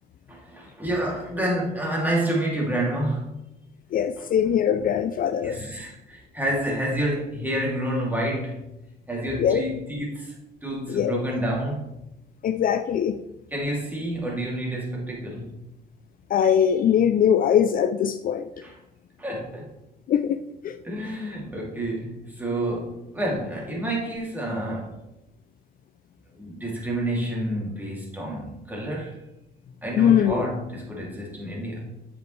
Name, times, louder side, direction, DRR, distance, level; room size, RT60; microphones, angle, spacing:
voice 1, 0.3-3.3 4.2-4.3 5.4-8.7 9.1-10.4 10.6-11.9 13.5-15.7 18.6-18.7 19.2-19.7 20.8-25.0 26.3-29.2 29.8-32.1, right 1 dB, 10° right, -3 dB, 2.6 m, -29 dB
voice 2, 3.9-5.6 9.4-9.6 10.9-11.2 12.4-13.2 16.3-18.5 20.1-20.8 30.0-30.5, left 9 dB, 50° left, 10 dB, 0.4 m, -21 dB
7.7 x 5.2 x 3.2 m, 0.87 s
cardioid pair, 85°, 18 cm